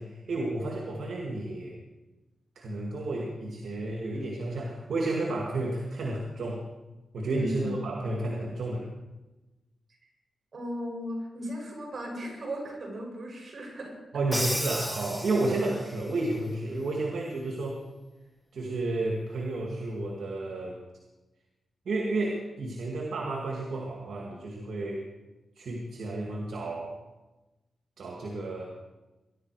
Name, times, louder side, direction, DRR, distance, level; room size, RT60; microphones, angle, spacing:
voice 1, 0.0-1.8 2.6-6.6 7.1-8.9 14.1-17.8 18.5-20.8 21.9-25.0 25.6-26.9 28.0-28.6, right 2 dB, 75° right, 0 dB, 2.2 m, -31 dB
voice 2, 7.4-7.7 10.5-13.9, equal, 50° right, -1 dB, 7.4 m, -36 dB
Crash cymbal, 14.3-16.0, equal, 5° right, 1.3 m, -33 dB
21.5 x 11.5 x 4.9 m, 1.1 s
cardioid pair, 80°, 0 cm